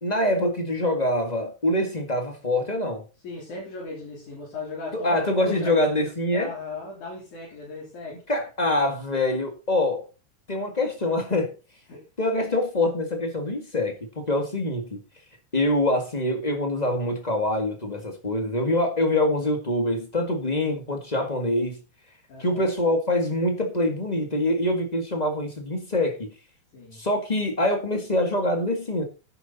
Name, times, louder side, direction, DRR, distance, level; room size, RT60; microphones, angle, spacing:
voice 1, 0.0-3.0 4.9-6.5 8.3-10.0 10.5-11.5 12.2-15.0 15.5-21.8 22.4-26.3 26.9-29.0, left 1 dB, 25° left, 0.9 m, -25 dB
voice 2, 3.2-5.9 6.3-8.2 11.9-12.0 22.3-22.7 26.7-27.0, left 3 dB, 70° left, 4.9 m, -37 dB
11.0 x 9.5 x 4.1 m
omnidirectional pair, 3.6 m